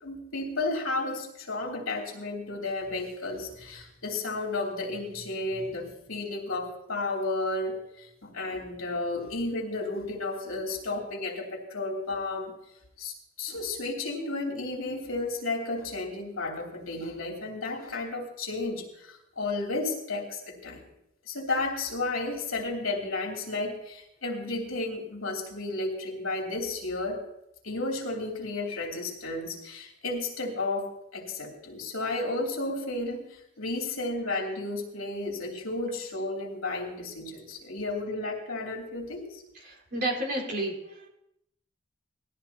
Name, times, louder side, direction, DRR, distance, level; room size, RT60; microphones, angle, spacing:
voice 1, 0.0-12.5 13.0-20.8 21.3-27.3 27.6-39.4, left 2 dB, 80° left, -1 dB, 3.0 m, -33 dB
voice 2, 39.5-41.1, right 1 dB, 50° right, -2 dB, 4.5 m, -31 dB
19.0 x 14.0 x 2.9 m, 0.83 s
head